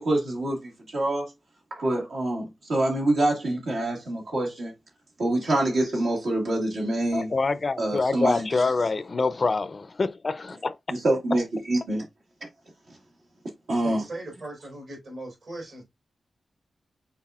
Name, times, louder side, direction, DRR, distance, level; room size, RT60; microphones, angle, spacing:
voice 1, 0.0-1.3 1.7-4.7 5.2-7.3 7.8-8.7 10.9-12.1 13.7-14.0, right 1 dB, 85° right, 1.8 m, -26 dB
voice 2, 7.1-10.7, left 3 dB, 45° left, 0.4 m, -26 dB
voice 3, 13.8-15.8, right 2 dB, 70° right, 3.5 m, -38 dB
5.8 x 3.9 x 2.4 m
wide cardioid pair, 85°, 0 cm